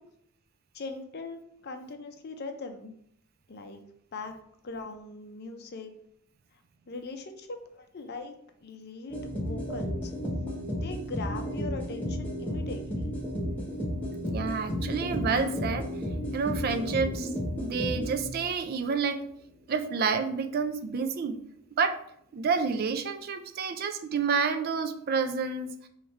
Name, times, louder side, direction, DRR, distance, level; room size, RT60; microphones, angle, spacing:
voice 1, 0.7-2.9 3.5-3.8 4.1-4.4 4.6-5.9 6.9-8.3 8.6-10.1 10.8-13.2, left 3 dB, 45° left, 6 dB, 0.5 m, -40 dB
sound 1, 9.1-18.6, left 1 dB, 5° left, 0.9 m, -33 dB
voice 2, 14.3-15.9 16.3-19.2 19.7-21.4 21.8-22.0 22.3-25.9, right 5 dB, 45° right, 9 dB, 0.3 m, -29 dB
3.5 x 3.1 x 4.4 m, 0.69 s
head